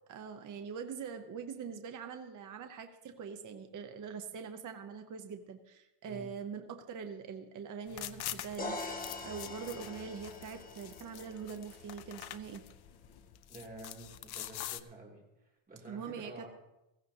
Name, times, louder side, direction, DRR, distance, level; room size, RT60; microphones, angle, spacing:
voice 1, 0.1-12.6 15.9-16.5, right 6 dB, 40° right, 6 dB, 0.8 m, -43 dB
sound 1, 7.9-14.8, left 13 dB, 55° left, 0.6 m, -45 dB
sound 2, 8.6-12.4, left 2 dB, 15° left, 1.1 m, -44 dB
voice 2, 13.5-16.5, right 2 dB, 15° right, -2 dB, 2.7 m, -50 dB
16.0 x 15.0 x 2.8 m, 0.93 s
cardioid pair, 160°, 49 cm